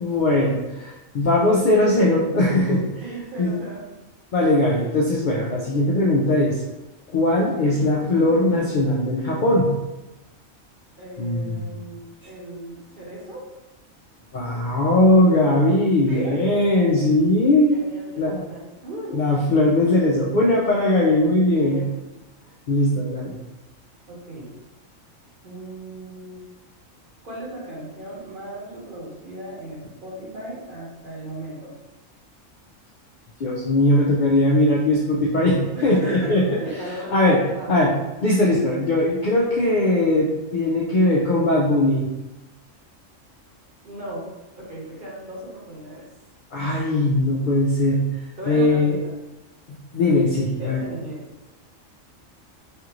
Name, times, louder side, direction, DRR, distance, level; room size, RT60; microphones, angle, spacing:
voice 1, 0.0-2.8 3.4-3.5 4.3-6.6 7.1-9.7 11.2-11.8 12.2-12.3 14.3-17.8 18.2-18.4 19.1-21.8 22.7-23.4 33.4-36.6 37.1-37.4 37.7-37.9 38.2-42.1 46.5-48.0 48.5-49.0 49.9-50.8, left 1 dB, 85° left, -3 dB, 0.4 m, -20 dB
voice 2, 3.0-3.8 11.0-13.4 16.1-16.4 17.7-19.2 21.5-21.9 24.1-24.5 25.4-26.4 27.2-31.7 35.7-37.8 43.8-44.3 44.5-46.1 48.4-49.1 50.6-51.2, right 1 dB, 45° right, -5 dB, 1.0 m, -36 dB
3.3 x 2.4 x 2.9 m, 1.0 s
omnidirectional pair, 1.4 m